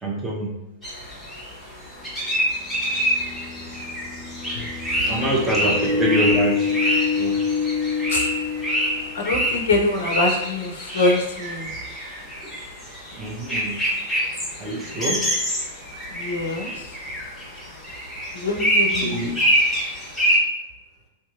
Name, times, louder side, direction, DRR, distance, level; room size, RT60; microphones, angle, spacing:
voice 1, 0.0-0.6 5.0-6.7 7.2-7.4 13.1-13.8 14.6-15.3 19.1-19.4, right 1 dB, 15° right, -4 dB, 0.8 m, -25 dB
sound 1, 0.8-20.4, equal, 5° left, 1.1 m, -26 dB
sound 2, 1.1-1.2 2.6-9.5, left 5 dB, 50° right, 0.7 m, -27 dB
voice 2, 5.1-5.8 8.1-8.3 9.1-11.7 16.1-17.0 18.3-19.3, left 2 dB, 60° left, 1 dB, 0.4 m, -25 dB
2.7 x 2.6 x 2.4 m, 0.98 s
figure-of-eight pair, 95°, 0 cm